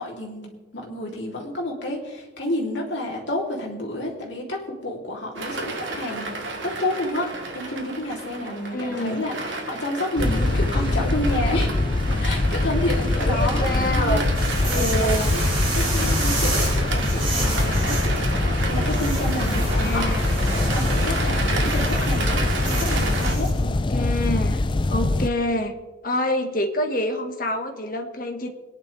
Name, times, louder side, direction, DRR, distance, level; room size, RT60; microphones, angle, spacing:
voice 1, 0.0-6.3 6.6-9.3 9.6-11.8 12.2-14.2 14.6-15.4 15.7-18.3 18.7-20.2 20.7-23.5, left 1 dB, 65° left, -2 dB, 3.4 m, -30 dB
sound 1, 5.3-23.4, right 2 dB, 75° right, 2.1 m, -31 dB
voice 2, 8.7-9.3 13.2-14.2 14.7-15.3 19.7-20.2 23.6-24.6 24.9-25.7 26.0-28.5, left 1 dB, 45° left, 4 dB, 1.7 m, -26 dB
sound 2, 10.2-25.3, left 2 dB, 25° left, 0.4 m, -23 dB
sound 3, 14.3-23.6, right 3 dB, 30° right, 4.8 m, -32 dB
22.5 x 11.0 x 3.5 m, 1.2 s
head